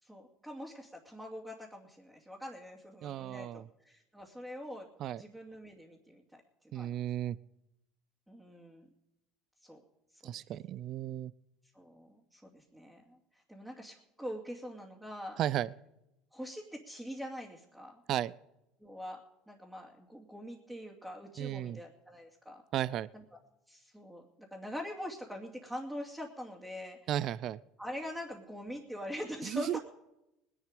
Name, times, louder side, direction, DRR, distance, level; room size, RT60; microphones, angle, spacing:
voice 1, 0.0-4.9 5.2-6.9 8.3-8.9 9.6-9.8 10.3-10.5 11.7-13.2 13.5-15.4 16.3-18.0 18.8-19.2 19.5-22.6 23.1-23.2 23.7-27.0 27.8-29.8, equal, 5° right, -2 dB, 2.6 m, -44 dB
voice 2, 3.0-3.7 5.0-5.2 6.7-7.4 10.2-11.3 15.4-15.7 18.1-18.3 21.4-21.8 22.7-23.1 27.1-27.6 29.4-29.8, right 12 dB, 55° right, 20 dB, 0.5 m, -34 dB
20.0 x 11.0 x 5.2 m, 0.87 s
supercardioid pair, 90°, 0 cm